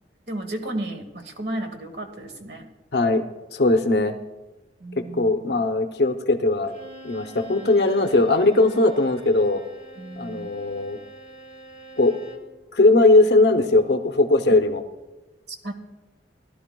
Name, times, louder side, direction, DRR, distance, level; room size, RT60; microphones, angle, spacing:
voice 1, 0.3-2.7 4.8-5.7 10.0-10.5 15.5-15.7, right 1 dB, 65° right, 5 dB, 1.4 m, -33 dB
voice 2, 2.9-3.2 3.5-4.2 5.1-6.7 7.0-9.6 10.2-11.0 12.0-12.2 12.7-14.8, left 2 dB, 65° left, 7 dB, 0.8 m, -19 dB
Bowed string instrument, 6.6-12.5, right 2 dB, 30° right, 1.2 m, -45 dB
18.0 x 11.5 x 2.3 m, 1.1 s
head